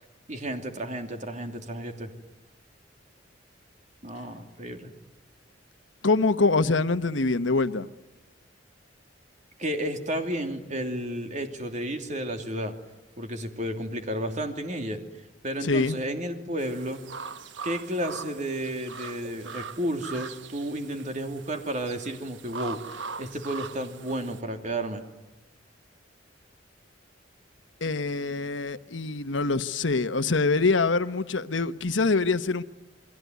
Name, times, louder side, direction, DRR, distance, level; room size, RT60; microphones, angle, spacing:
voice 1, 0.3-2.1 4.0-4.9 9.6-12.7 13.2-15.0 15.4-17.0 17.6-25.0, right 1 dB, 40° right, 3.0 m, -32 dB
voice 2, 6.0-7.9 15.6-16.0 27.8-32.6, left 3 dB, 80° left, 1.1 m, -24 dB
sound 1, 16.6-24.4, right 5 dB, 75° right, 1.1 m, -41 dB
29.0 x 21.5 x 9.4 m
head